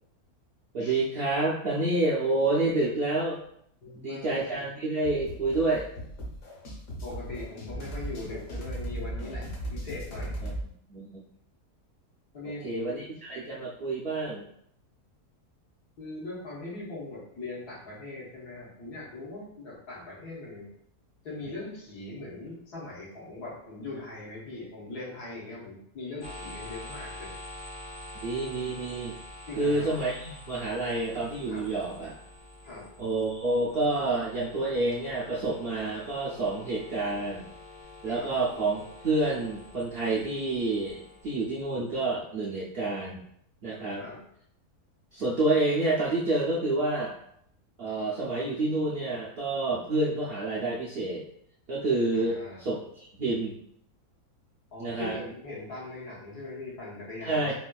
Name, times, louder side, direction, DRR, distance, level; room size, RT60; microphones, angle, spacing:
voice 1, 0.7-3.4 3.9-5.9 10.4-10.5 10.9-11.2 12.4-14.5 28.2-29.1 29.6-32.2 33.0-37.5 38.0-43.2 43.6-44.0 45.1-47.2 47.8-51.2 51.7-53.6 54.8-55.2 57.2-57.5, right 2 dB, 75° right, -6 dB, 0.5 m, -28 dB
voice 2, 3.8-4.6 7.0-10.4 12.3-13.0 16.0-20.7 21.2-27.3 29.5-29.9 31.5-31.7 32.6-32.9 38.0-38.3 44.0-44.2 52.1-52.6 54.7-57.5, left 2 dB, 85° left, -6 dB, 1.6 m, -40 dB
sound 1, 5.0-10.6, right 1 dB, 65° left, 1.3 m, -37 dB
sound 2, 26.2-41.9, left 1 dB, 50° left, 0.7 m, -47 dB
4.1 x 2.3 x 2.2 m, 0.71 s
omnidirectional pair, 1.7 m